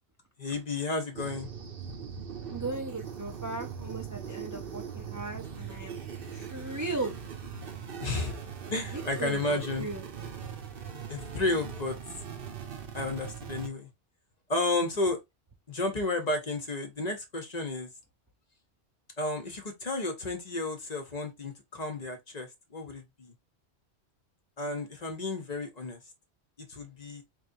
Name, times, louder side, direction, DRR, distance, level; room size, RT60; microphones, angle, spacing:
voice 1, 0.4-1.5 8.0-8.4 8.7-9.9 11.1-12.0 12.9-13.9 14.5-15.2 15.7-17.9 19.2-23.3 24.6-26.0 26.6-27.2, left 2 dB, 40° left, 0.9 m, -32 dB
sound 1, 1.1-13.7, right 7 dB, 60° right, 0.9 m, -40 dB
voice 2, 2.5-6.0 6.3-7.2 8.9-10.0, right 3 dB, 25° right, 0.4 m, -37 dB
4.2 x 3.2 x 2.6 m
omnidirectional pair, 1.1 m